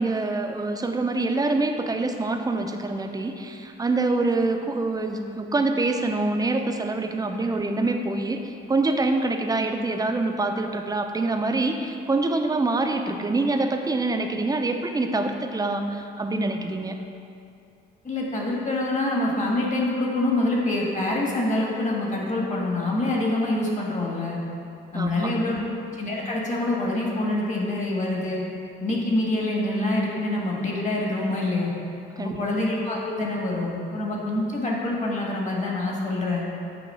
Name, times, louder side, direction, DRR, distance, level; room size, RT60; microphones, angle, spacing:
voice 1, 0.0-17.0 24.9-25.6 32.2-32.5, right 2 dB, 20° right, 5 dB, 0.5 m, -25 dB
voice 2, 18.0-24.4 24.9-25.6 26.0-28.4 28.8-31.7 32.2-36.5, left 2 dB, 35° left, -2 dB, 1.5 m, -26 dB
8.5 x 2.9 x 5.5 m, 2.5 s
cardioid pair, 90°, 20 cm